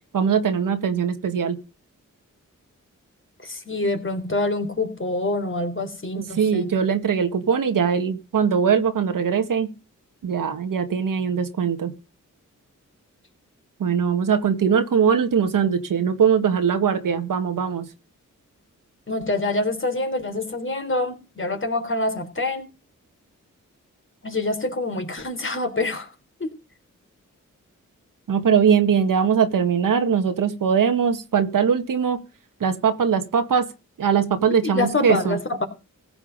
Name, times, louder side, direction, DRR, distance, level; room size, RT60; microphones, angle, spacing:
voice 1, 0.1-1.6 6.1-9.7 10.2-11.9 13.8-17.9 28.3-32.2 32.6-33.7 34.0-35.4, right 7 dB, 85° right, 7 dB, 1.9 m, -21 dB
voice 2, 3.4-6.7 19.1-22.7 24.2-26.1 26.4-26.5 34.6-35.7, left 2 dB, 40° left, 6 dB, 3.8 m, -26 dB
16.0 x 8.2 x 5.3 m, 0.30 s
cardioid pair, 50°, 32 cm